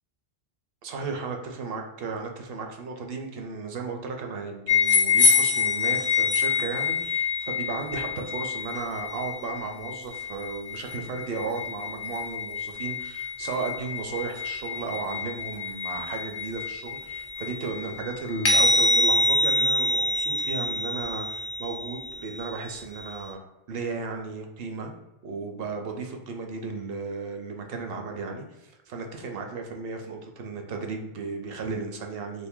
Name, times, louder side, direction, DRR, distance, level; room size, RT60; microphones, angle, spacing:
voice 1, 0.8-23.4 23.7-24.9 25.2-32.5, right 4 dB, 65° right, 3 dB, 0.7 m, -35 dB
sound 1, 4.7-23.2, left 3 dB, 55° left, 0.7 m, -26 dB
2.6 x 2.6 x 3.6 m, 0.98 s
omnidirectional pair, 1.1 m